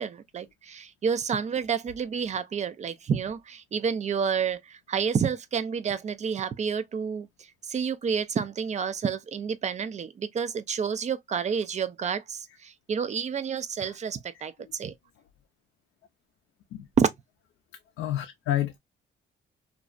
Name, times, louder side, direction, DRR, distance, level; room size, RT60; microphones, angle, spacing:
voice 1, 0.0-7.3 7.7-14.5 14.8-14.9 17.0-17.1, right 6 dB, 35° right, 0.4 m, -29 dB
voice 2, 18.0-18.8, left 12 dB, 85° left, 0.4 m, -29 dB
2.6 x 2.0 x 2.3 m
cardioid pair, 90°, 20 cm